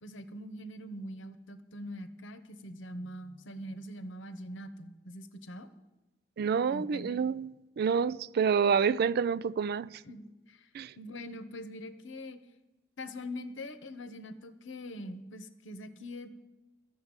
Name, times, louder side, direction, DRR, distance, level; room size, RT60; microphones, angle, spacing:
voice 1, 0.0-5.7 6.7-7.1 10.0-10.7 11.0-12.4 13.0-16.3, left 1 dB, 80° left, 1.0 m, -43 dB
voice 2, 6.4-10.0 10.7-10.9, right 6 dB, 55° right, 0.3 m, -28 dB
12.5 x 6.8 x 8.7 m
head